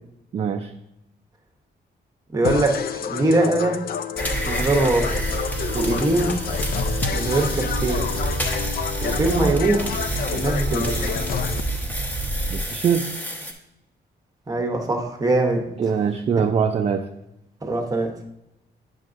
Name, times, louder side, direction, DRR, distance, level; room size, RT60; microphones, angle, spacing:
voice 1, 0.3-0.7 12.5-13.1 15.8-17.0, right 6 dB, 35° right, 5 dB, 0.4 m, -22 dB
voice 2, 2.3-2.8 3.1-3.8 4.5-5.2 5.7-6.4 7.1-8.1 9.0-9.9 10.3-11.0 14.5-15.6 17.6-18.1, right 2 dB, 20° right, 3 dB, 0.9 m, -22 dB
sound 1, 2.4-11.6, left 7 dB, 60° left, 0.4 m, -29 dB
sound 2, 4.2-13.5, right 1 dB, 10° left, 0.9 m, -27 dB
9.0 x 6.4 x 2.5 m, 0.86 s
wide cardioid pair, 155°, 18 cm